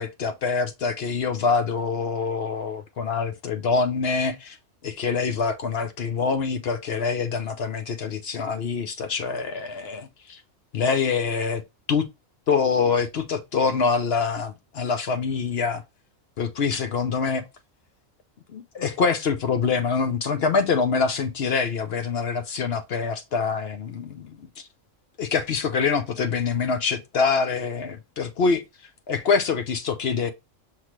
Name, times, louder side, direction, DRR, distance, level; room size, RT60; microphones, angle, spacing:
voice 1, 0.0-4.6 4.8-10.4 10.7-11.6 11.9-12.1 12.5-15.8 16.4-17.4 18.5-24.4 25.2-28.6 29.1-30.3, left 5 dB, 60° left, 0.8 m, -25 dB
5.8 x 3.0 x 3.0 m
omnidirectional pair, 1.3 m